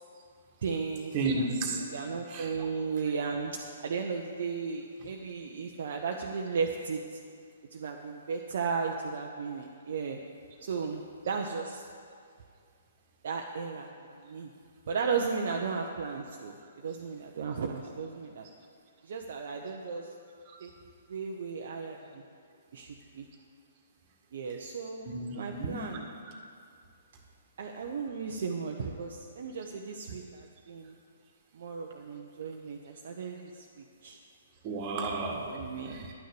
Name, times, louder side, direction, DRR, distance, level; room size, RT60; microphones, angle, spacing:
voice 1, 0.6-1.5 1.7-7.2 7.7-10.2 10.6-11.8 13.2-14.5 14.9-16.6 16.8-18.5 19.0-20.1 20.6-20.7 21.1-22.2 22.7-22.9 23.1-23.3 24.3-25.1 25.3-26.1 27.6-30.9 31.5-34.2 35.5-36.1, right 5 dB, 55° right, 1 dB, 0.8 m, -35 dB
voice 2, 1.1-1.8 2.3-2.5 20.5-20.6 25.0-25.8 34.6-35.6 35.9-36.1, right 3 dB, 30° right, 1 dB, 1.8 m, -33 dB
11.0 x 6.5 x 8.5 m, 2.3 s
figure-of-eight pair, 125°, 0 cm